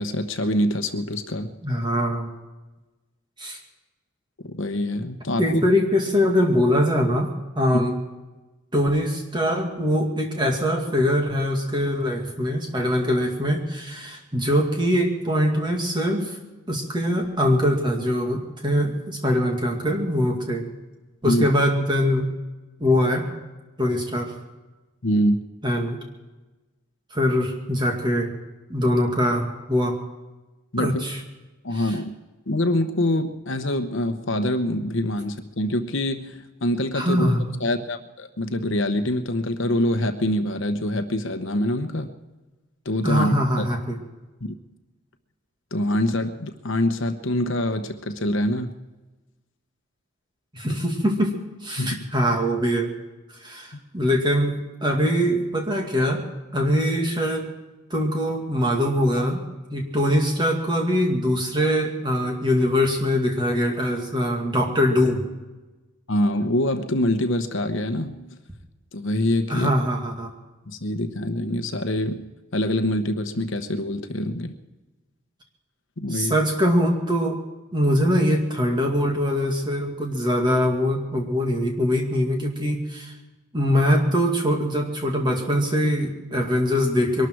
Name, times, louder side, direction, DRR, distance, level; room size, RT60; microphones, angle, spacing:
voice 1, 0.0-1.5 4.4-5.4 21.2-21.5 25.0-25.5 30.7-31.0 31.6-32.1 32.5-37.3 37.6-42.1 42.8-43.7 44.4-44.5 45.7-48.7 50.7-50.8 51.8-52.1 66.1-68.4 68.9-69.7 70.7-72.2 72.5-74.5 76.0-76.4, left 1 dB, 60° left, 7 dB, 1.0 m, -25 dB
voice 2, 1.6-2.3 3.4-3.6 5.4-8.0 8.7-16.4 16.7-20.7 21.2-22.3 22.8-23.3 23.8-24.3 25.6-26.0 27.1-28.3 28.7-30.0 30.8-31.2 31.7-31.9 36.9-37.5 43.0-44.0 50.5-52.9 53.4-56.2 56.5-57.5 57.9-59.4 59.7-65.2 69.5-70.3 76.1-77.4 77.7-83.1 83.5-87.3, equal, 20° right, 2 dB, 2.3 m, -22 dB
22.5 x 12.5 x 4.7 m, 1.1 s
head